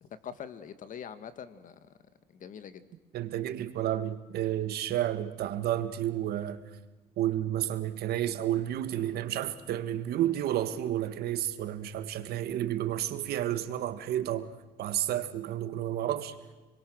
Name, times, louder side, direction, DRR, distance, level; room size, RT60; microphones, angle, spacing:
voice 1, 0.0-1.9 2.3-2.9, left 8 dB, 50° left, 1.8 m, -44 dB
voice 2, 3.1-6.6 7.2-14.5 14.8-16.3, right 12 dB, 70° right, 1.6 m, -31 dB
28.5 x 22.5 x 6.3 m
cardioid pair, 110°, 17 cm